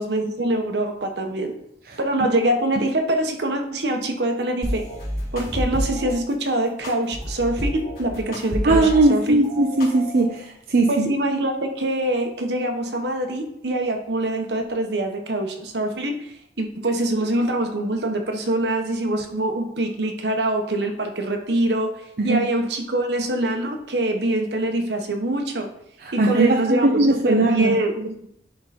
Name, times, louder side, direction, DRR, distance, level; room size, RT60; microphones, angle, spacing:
voice 1, 0.0-1.5 2.0-4.8 5.3-9.5 10.9-21.9 22.2-25.7 26.1-28.3, right 1 dB, 75° right, 4 dB, 1.2 m, -24 dB
sound 1, 4.6-6.2 6.8-9.1 9.4-10.4, equal, 50° left, 3.0 m, -29 dB
voice 2, 8.6-11.1 22.2-22.4 26.0-27.8, right 2 dB, 55° right, 2 dB, 0.6 m, -19 dB
10.5 x 3.9 x 4.3 m, 0.74 s
head